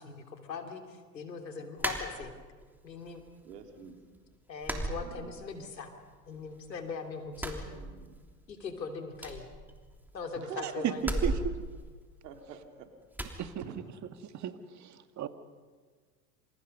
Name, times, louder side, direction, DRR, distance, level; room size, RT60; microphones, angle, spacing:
voice 1, 0.0-2.3 2.8-3.2 4.5-5.9 6.3-7.6 8.5-9.4 10.1-11.3, left 4 dB, 85° left, 5 dB, 3.1 m, -40 dB
sound 1, 1.8-2.7 3.1-3.8 4.0-4.2 4.6-5.8 6.0-6.9 7.3-8.4 8.7-8.8 9.1-10.3 11.0-12.6 13.1-13.4, right 1 dB, 5° right, 3.2 m, -37 dB
voice 2, 3.4-4.0 4.9-5.4 7.6-8.2 10.4-10.9 12.2-12.6 13.3-13.4, right 8 dB, 70° right, 4 dB, 3.6 m, -46 dB
voice 3, 10.6-11.4 13.4-13.5 14.2-15.3, right 10 dB, 35° right, 9 dB, 1.9 m, -34 dB
27.5 x 27.0 x 5.5 m, 1.5 s
hypercardioid pair, 85°, 49 cm